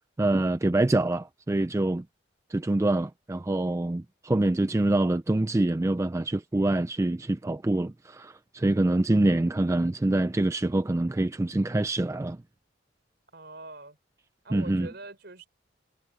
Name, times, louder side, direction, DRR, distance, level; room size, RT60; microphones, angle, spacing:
voice 1, 0.2-2.0 2.5-12.4 14.5-14.9, right 2 dB, 15° right, 0.3 m, -25 dB
voice 2, 13.3-14.0 14.4-15.5, right 2 dB, 55° right, 4.4 m, -43 dB
head